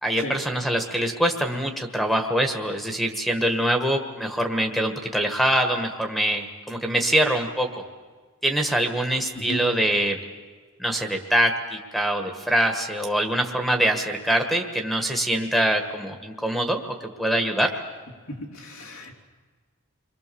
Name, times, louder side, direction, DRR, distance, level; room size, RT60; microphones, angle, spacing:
voice 1, 0.0-7.8 8.4-10.2 10.8-17.8, right 1 dB, ahead, 5 dB, 1.5 m, -24 dB
voice 2, 18.3-19.2, equal, 75° left, 0 dB, 3.6 m, -34 dB
29.0 x 23.0 x 7.0 m, 1.5 s
head